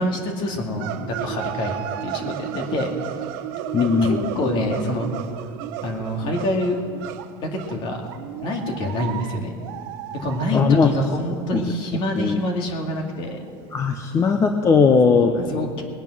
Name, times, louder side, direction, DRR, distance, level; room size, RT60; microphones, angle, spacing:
voice 1, 0.0-2.9 4.0-5.1 5.8-6.8 7.4-8.1 8.4-9.5 10.2-13.4 15.2-15.8, left 1 dB, 50° left, 2 dB, 2.2 m, -26 dB
sound 1, 0.7-10.9 11.2-11.3 11.5-11.6 11.9-12.0 12.4-12.5 12.9-13.0 13.5-13.6 14.2-14.3, right 11 dB, 80° right, 0.8 m, -33 dB
voice 2, 3.7-4.3 10.5-10.9 11.5-11.6 12.2-12.4 13.7-15.3, left 5 dB, 25° left, 6 dB, 0.7 m, -18 dB
20.0 x 9.1 x 6.1 m, 2.2 s
cardioid pair, 150°, 11 cm